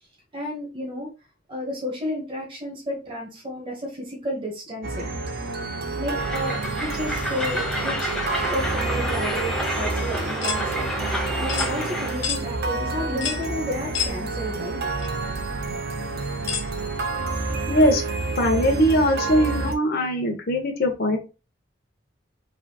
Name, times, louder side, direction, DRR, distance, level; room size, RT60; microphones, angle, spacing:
voice 1, 0.3-1.1 1.5-5.1 5.9-8.1 8.5-10.7 11.3-14.8, equal, 25° right, -2 dB, 1.3 m, -32 dB
sound 1, 4.8-19.7, right 3 dB, 55° right, 0.8 m, -29 dB
Train, 6.2-12.2, equal, 5° left, 1.0 m, -29 dB
sound 2, 10.4-10.6 11.5-11.7 12.2-12.4 13.2-13.4 13.9-14.1 15.0-15.1 16.5-16.7, left 7 dB, 70° left, 1.1 m, -28 dB
voice 2, 17.7-18.0 18.4-21.2, equal, 55° left, 2 dB, 1.0 m, -21 dB
4.9 x 3.9 x 2.3 m, 0.30 s
head